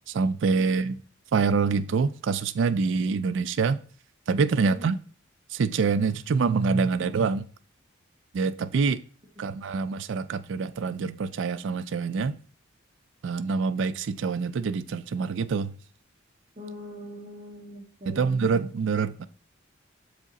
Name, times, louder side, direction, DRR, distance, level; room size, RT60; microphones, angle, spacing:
voice 1, 0.1-1.0 1.3-3.8 4.3-5.0 5.5-7.5 8.3-9.0 9.4-12.4 13.2-15.7 18.1-19.2, right 5 dB, 65° right, 0.4 m, -25 dB
voice 2, 16.6-18.4, equal, 35° right, 1.6 m, -42 dB
6.8 x 4.9 x 4.0 m
head